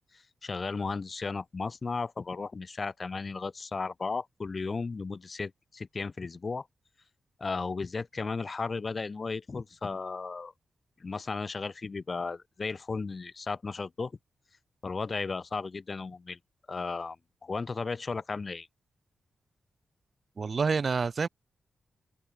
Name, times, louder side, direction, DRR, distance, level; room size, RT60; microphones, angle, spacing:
voice 1, 0.1-6.7 7.4-10.5 11.0-14.1 14.8-16.4 16.7-17.2 17.4-18.7, left 4 dB, 40° left, 1.0 m, -35 dB
voice 2, 20.4-21.3, right 5 dB, 50° right, 0.7 m, -27 dB
open air
cardioid pair, 80°, 0 cm